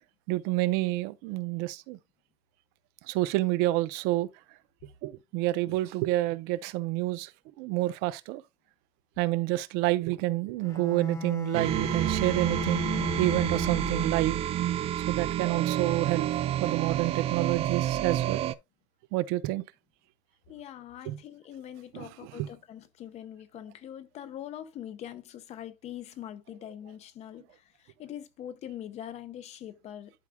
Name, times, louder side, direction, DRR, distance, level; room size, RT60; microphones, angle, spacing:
voice 1, 0.3-2.0 3.1-4.3 5.0-7.3 7.6-8.4 9.2-12.8 13.2-14.4 15.1-16.3 16.6-18.5 19.1-19.6 21.1-21.2 21.9-22.1 22.4-22.5, right 18 dB, 85° right, 0.6 m, -28 dB
Bowed string instrument, 10.6-14.4, left 3 dB, 20° left, 1.1 m, -35 dB
sound 1, 11.5-18.5, right 12 dB, 35° right, 0.4 m, -29 dB
voice 2, 20.5-30.1, left 10 dB, 40° left, 0.8 m, -43 dB
11.5 x 4.8 x 2.3 m
cardioid pair, 170°, 16 cm